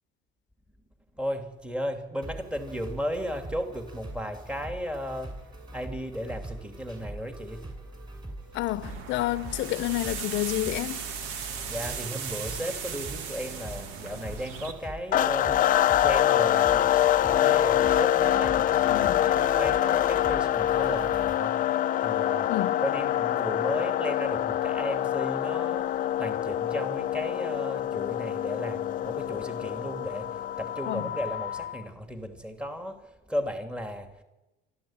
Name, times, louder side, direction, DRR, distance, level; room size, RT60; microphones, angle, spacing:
voice 1, 1.1-5.5 5.7-7.6 11.7-22.5 22.8-34.2, equal, 5° right, 2.7 m, -35 dB
sound 1, 2.2-21.3, right 1 dB, 20° right, 7.1 m, -43 dB
voice 2, 8.5-11.1 18.9-19.3 22.4-22.7 30.9-31.1, left 17 dB, 60° left, 1.0 m, -29 dB
sound 2, 8.8-14.7, right 7 dB, 75° right, 2.6 m, -37 dB
sound 3, 15.1-31.8, left 12 dB, 40° left, 0.8 m, -25 dB
26.0 x 13.0 x 8.9 m
cardioid pair, 130°, 21 cm